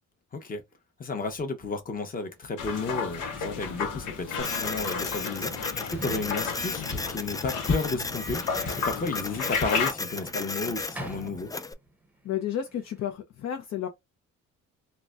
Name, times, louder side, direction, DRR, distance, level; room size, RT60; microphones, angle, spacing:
voice 1, 1.0-11.5, left 3 dB, 30° left, 0.9 m, -32 dB
Sliding door, 2.2-2.3 2.9-12.1 12.3-13.1, right 2 dB, 5° right, 0.8 m, -46 dB
sound 1, 2.6-9.9, left 5 dB, 90° left, 0.8 m, -33 dB
Printer, 4.4-11.7, left 3 dB, 10° left, 0.3 m, -35 dB
voice 2, 12.2-13.9, left 10 dB, 65° left, 0.7 m, -31 dB
3.9 x 2.2 x 2.4 m
cardioid pair, 90°, 30 cm